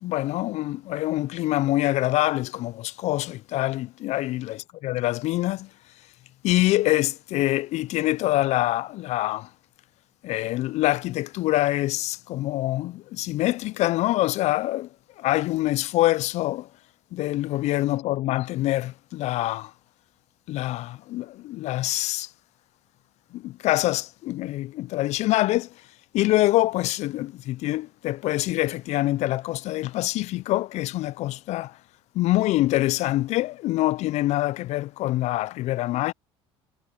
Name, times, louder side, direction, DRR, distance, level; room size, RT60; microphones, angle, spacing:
voice 1, 0.0-5.7 6.4-9.5 10.2-14.9 15.2-16.7 17.1-19.7 20.5-22.3 23.3-25.7 26.1-31.8 32.1-36.1, left 17 dB, 60° left, 0.5 m, -25 dB
hypercardioid pair, 70°, 13 cm